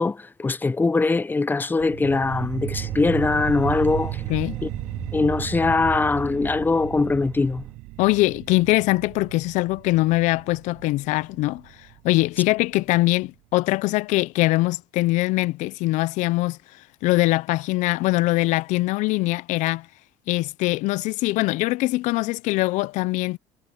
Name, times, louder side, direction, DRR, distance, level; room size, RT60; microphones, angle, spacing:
voice 1, 0.0-4.2 4.6-4.7 5.1-7.6, left 3 dB, 15° left, 0.7 m, -22 dB
sound 1, 1.8-12.8, right 20 dB, 75° right, 0.6 m, -35 dB
sound 2, 2.7-7.7, right 1 dB, 5° right, 3.2 m, -40 dB
voice 2, 8.0-11.6 12.0-16.6 17.0-19.9 20.3-23.4, left 20 dB, 70° left, 0.5 m, -22 dB
cardioid pair, 110°, 13 cm